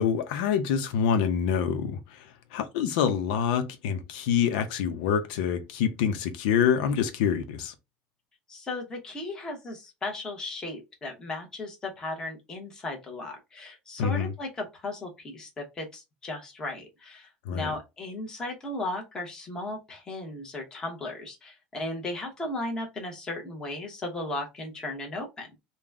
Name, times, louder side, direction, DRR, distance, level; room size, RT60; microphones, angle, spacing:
voice 1, 0.0-2.2 2.5-7.7 14.0-14.3 17.5-17.7, left 7 dB, 85° left, 0.7 m, -26 dB
voice 2, 8.5-25.5, left 2 dB, 15° left, 1.1 m, -36 dB
3.9 x 2.3 x 3.5 m
cardioid pair, 170°, 4 cm